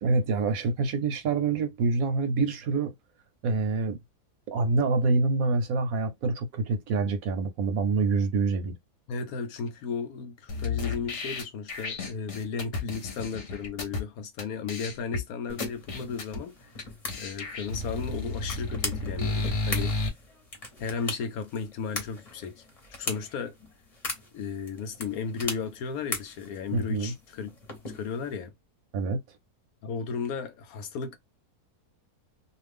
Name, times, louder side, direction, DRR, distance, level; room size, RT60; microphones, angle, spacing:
voice 1, 0.0-2.9 3.4-4.0 4.5-8.7 26.7-27.1 28.9-29.2, right 3 dB, 70° right, 1.1 m, -26 dB
voice 2, 9.1-16.9 17.2-19.9 20.8-22.6 23.0-23.5 24.3-27.5 27.9-28.5 29.8-31.1, left 5 dB, 70° left, 1.0 m, -34 dB
sound 1, 10.5-14.0 14.4-14.5 14.7-15.2 15.6-16.4 16.8-16.9 17.1-20.1, left 3 dB, 45° left, 0.9 m, -32 dB
sound 2, 15.5-28.3, left 2 dB, 30° left, 0.9 m, -40 dB
2.5 x 2.4 x 3.3 m
omnidirectional pair, 1.7 m